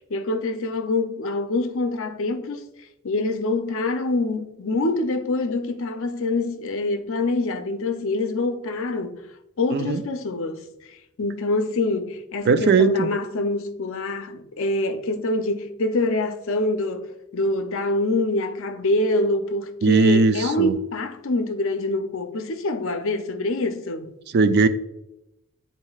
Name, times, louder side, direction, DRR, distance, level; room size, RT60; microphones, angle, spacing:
voice 1, 0.1-2.7 3.0-9.2 9.6-24.1, left 2 dB, 60° left, 0.6 m, -25 dB
voice 2, 9.7-10.0 12.5-13.1 19.8-20.8 24.3-24.7, right 4 dB, 50° right, 0.4 m, -18 dB
9.6 x 4.2 x 2.3 m
head